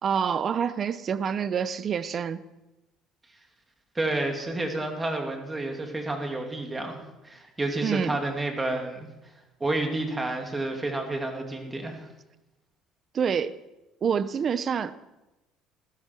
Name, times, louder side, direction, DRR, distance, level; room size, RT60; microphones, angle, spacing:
voice 1, 0.0-2.4 7.8-8.2 13.1-13.6 14.0-14.9, right 7 dB, 40° right, 14 dB, 0.8 m, -27 dB
voice 2, 3.9-7.0 7.2-9.1 9.6-12.1, right 2 dB, 15° right, 3 dB, 2.5 m, -30 dB
19.5 x 15.0 x 4.6 m, 1.0 s
cardioid pair, 130°, 0 cm